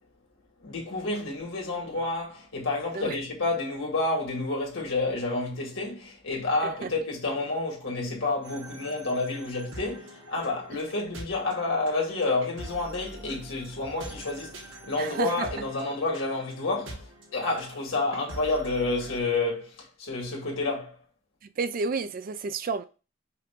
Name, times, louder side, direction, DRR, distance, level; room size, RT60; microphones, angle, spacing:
voice 1, 0.6-21.0, left 2 dB, 75° left, 2.0 m, -29 dB
sound 1, 8.4-19.2, right 1 dB, 65° right, 1.4 m, -45 dB
voice 2, 15.0-15.5 21.6-22.8, right 4 dB, 45° right, 0.4 m, -31 dB
5.6 x 2.6 x 3.6 m
head